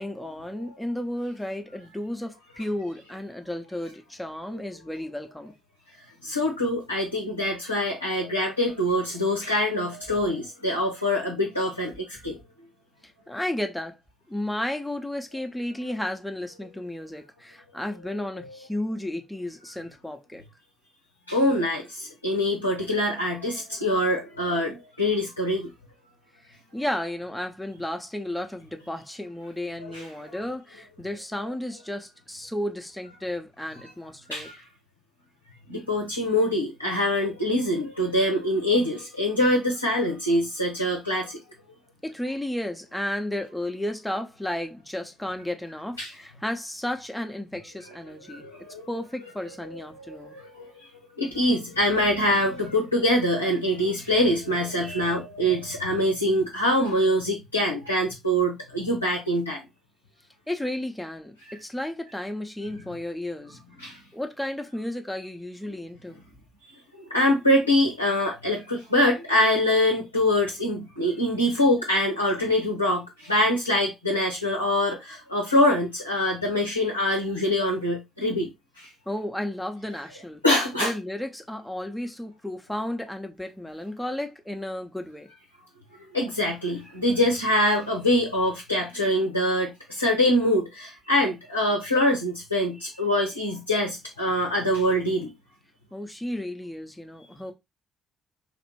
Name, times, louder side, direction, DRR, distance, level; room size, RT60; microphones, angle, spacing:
voice 1, 0.0-5.5 13.3-14.0 14.3-20.4 26.5-34.5 42.0-48.5 48.9-50.4 60.5-63.6 64.1-66.2 79.1-80.4 80.8-85.3 95.9-97.5, left 1 dB, 5° left, 0.7 m, -33 dB
voice 2, 6.2-12.4 18.4-18.6 21.3-25.7 29.8-30.3 34.3-34.6 35.7-41.4 46.0-46.1 48.3-48.9 49.6-50.7 51.2-59.6 63.8-64.0 67.1-78.5 78.8-78.9 80.4-80.9 86.1-95.3, left 1 dB, 90° left, 0.6 m, -24 dB
3.2 x 2.5 x 3.1 m
figure-of-eight pair, 45°, 0 cm